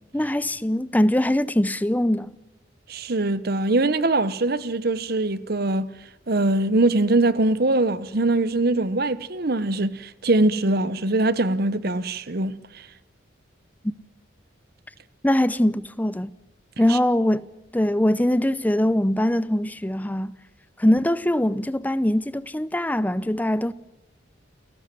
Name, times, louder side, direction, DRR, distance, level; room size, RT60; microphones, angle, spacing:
voice 1, 0.1-2.3 13.8-13.9 15.2-16.3 16.8-20.3 20.8-23.7, left 1 dB, 10° left, 0.6 m, -22 dB
voice 2, 2.9-5.9 6.3-12.5 16.9-17.0, right 2 dB, 55° right, 1.0 m, -22 dB
29.5 x 14.5 x 7.7 m
head